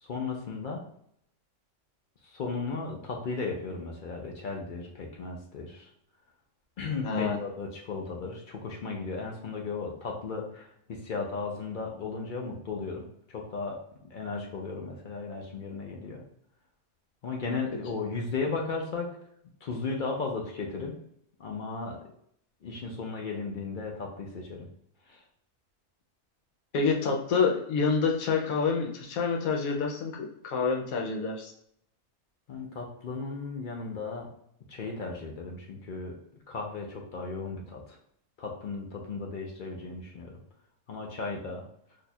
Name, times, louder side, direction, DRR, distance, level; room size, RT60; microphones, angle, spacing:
voice 1, 0.0-0.8 2.2-5.9 6.8-13.8 14.1-16.2 17.2-19.1 19.6-20.9 21.4-22.0 22.6-24.7 25.1-25.2 32.5-34.3 34.7-36.1 36.5-38.0 38.4-40.3 40.9-41.6, left 4 dB, 60° left, 0 dB, 0.5 m, -35 dB
voice 2, 7.0-7.4 26.7-31.5, left 5 dB, 85° left, 1 dB, 1.1 m, -27 dB
2.8 x 2.3 x 4.1 m, 0.68 s
omnidirectional pair, 1.5 m